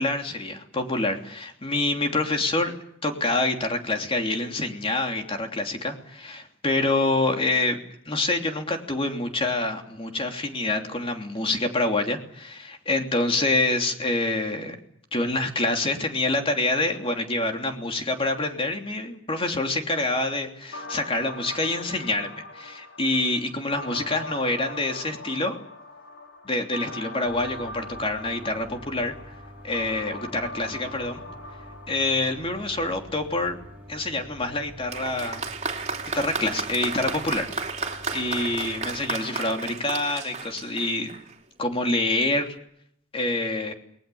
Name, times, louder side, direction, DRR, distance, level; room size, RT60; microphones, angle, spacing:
voice 1, 0.0-2.7 3.0-7.8 8.1-14.7 15.1-25.6 26.4-29.1 29.6-31.2 31.9-33.6 33.9-35.5 36.1-37.5 38.1-41.1 41.6-42.5 43.1-43.7, left 2 dB, 30° left, 4 dB, 3.1 m, -26 dB
sound 1, 20.7-32.7, left 2 dB, 90° left, 4.6 m, -41 dB
sound 2, 27.2-39.2, equal, 5° right, 4.8 m, -46 dB
Applause, 34.9-41.4 42.3-42.4, right 3 dB, 35° right, 3.1 m, -33 dB
29.0 x 20.5 x 7.1 m, 0.71 s
head